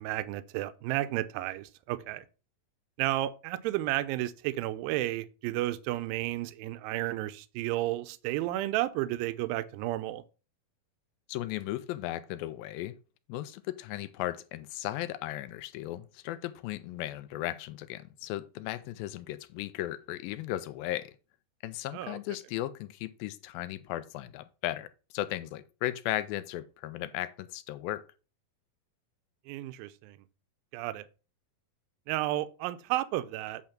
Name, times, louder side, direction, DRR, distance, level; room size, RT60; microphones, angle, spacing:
voice 1, 0.0-2.2 3.0-10.2 21.9-22.2 29.5-30.2 30.7-31.1 32.1-33.6, right 16 dB, 85° right, 2.3 m, -32 dB
voice 2, 11.3-13.0 13.3-21.1 21.6-24.9 25.1-28.0, left 14 dB, 80° left, 2.3 m, -36 dB
8.7 x 3.5 x 5.7 m
omnidirectional pair, 4.3 m